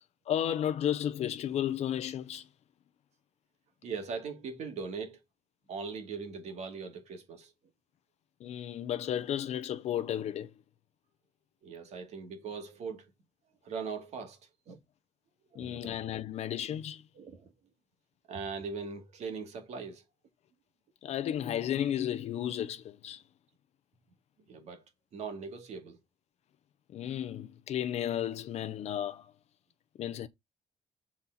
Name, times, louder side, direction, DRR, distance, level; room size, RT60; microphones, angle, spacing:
voice 1, 0.3-2.5 8.4-10.5 15.6-17.0 21.0-23.2 26.9-29.3 30.0-30.3, left 10 dB, 70° left, 0.7 m, -33 dB
voice 2, 3.8-5.2 5.7-7.5 11.6-13.1 13.6-14.4 14.7-14.8 15.5-15.9 17.1-17.5 18.3-20.0 24.5-24.8 25.1-26.0, right 5 dB, 75° right, 2.4 m, -40 dB
7.3 x 4.3 x 4.0 m
cardioid pair, 155°, 12 cm